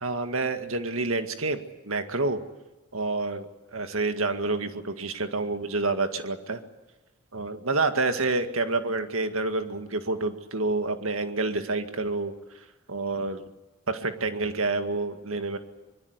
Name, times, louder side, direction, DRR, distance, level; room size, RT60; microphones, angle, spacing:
voice 1, 0.0-1.6 1.8-2.4 2.9-6.6 7.3-12.3 12.9-13.5 13.9-15.6, right 3 dB, 70° right, 7 dB, 2.0 m, -28 dB
24.5 x 22.0 x 8.2 m, 1.1 s
head